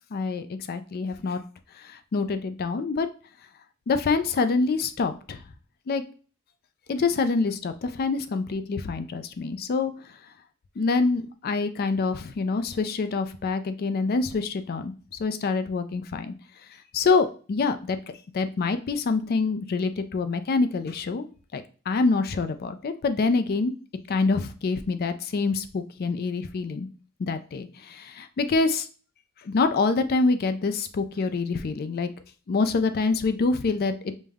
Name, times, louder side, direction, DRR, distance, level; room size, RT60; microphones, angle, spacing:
voice 1, 0.1-1.4 1.8-3.1 3.9-5.4 5.9-6.0 6.9-9.9 10.8-14.9 15.2-16.3 16.9-18.0 18.3-23.7 24.1-26.9 27.2-28.9 29.4-32.1 32.5-34.1, left 4 dB, 45° left, 10 dB, 0.3 m, -26 dB
5.1 x 2.1 x 3.4 m, 0.38 s
head